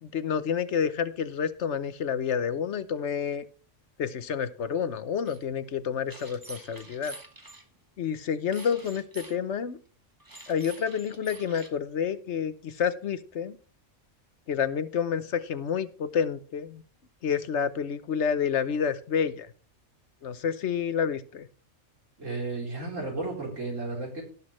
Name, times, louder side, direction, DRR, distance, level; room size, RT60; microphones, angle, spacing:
voice 1, 0.0-3.4 4.0-7.1 8.0-9.8 10.5-13.6 14.5-16.8 17.2-19.5 20.2-21.5, left 7 dB, 65° left, 14 dB, 1.1 m, -29 dB
sound 1, 5.3-5.4 6.1-7.6 8.5-9.4 10.2-11.7, right 2 dB, 15° right, 1.2 m, -46 dB
voice 2, 22.2-24.2, right 3 dB, 75° right, 0 dB, 4.1 m, -33 dB
17.5 x 6.4 x 3.1 m, 0.38 s
omnidirectional pair, 1.3 m